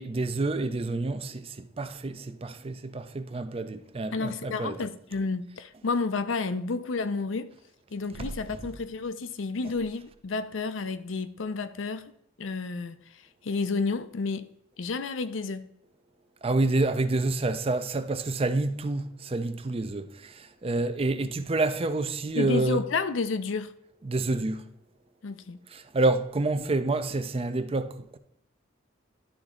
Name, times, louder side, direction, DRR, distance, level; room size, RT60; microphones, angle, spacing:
voice 1, 0.0-4.8 8.2-8.7 16.4-22.8 24.0-24.7 25.7-28.2, right 2 dB, 30° right, 0.5 m, -28 dB
voice 2, 4.1-7.5 7.9-12.1 12.4-13.0 13.4-14.5 14.8-15.6 22.4-23.7 25.2-25.6, left 4 dB, 75° left, 0.5 m, -30 dB
11.5 x 3.9 x 3.7 m
head